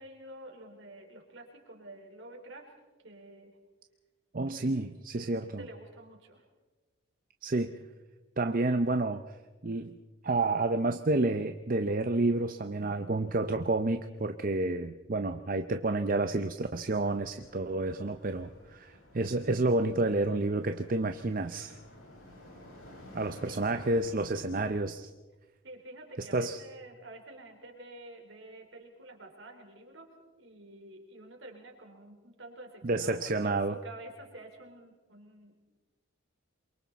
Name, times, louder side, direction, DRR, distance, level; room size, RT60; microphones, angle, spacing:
voice 1, 0.0-2.7 3.0-3.6 4.5-4.7 5.2-6.4 23.5-23.7 25.6-30.1 30.4-33.2 33.4-35.6, right 1 dB, 65° right, 2 dB, 4.1 m, -49 dB
voice 2, 4.3-5.7 7.4-7.8 8.4-9.4 9.6-9.9 10.2-21.8 23.1-25.1 26.2-26.6 32.8-33.7, right 2 dB, 40° right, 8 dB, 0.6 m, -30 dB
sound 1, 16.8-24.8, left 1 dB, 85° left, 6.3 m, -53 dB
28.0 x 23.0 x 4.1 m, 1.2 s
head